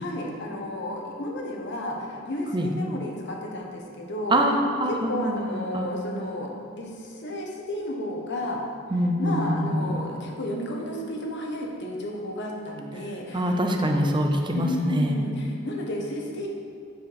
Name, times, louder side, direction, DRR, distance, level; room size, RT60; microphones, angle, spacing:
voice 1, 0.0-4.4 4.9-6.5 6.8-8.6 9.2-13.6 13.9-14.0 14.5-16.5, left 1 dB, 60° left, 0 dB, 1.1 m, -32 dB
voice 2, 4.3-5.9 8.9-10.0 13.3-15.2, equal, 25° right, 3 dB, 0.7 m, -24 dB
7.7 x 4.9 x 5.4 m, 2.3 s
head